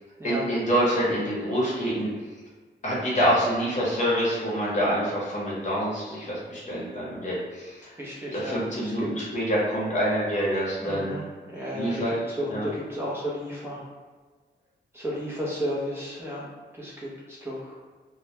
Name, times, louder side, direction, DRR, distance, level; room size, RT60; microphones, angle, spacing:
voice 1, 0.2-2.1 2.8-7.9 8.3-11.1 11.7-12.1 12.5-12.7, equal, 40° left, -6 dB, 0.8 m, -26 dB
voice 2, 8.0-9.1 10.8-12.0 12.3-13.8 14.9-16.5 16.7-17.8, equal, 15° right, -6 dB, 0.6 m, -33 dB
2.1 x 2.1 x 2.8 m, 1.4 s
wide cardioid pair, 170°, 18 cm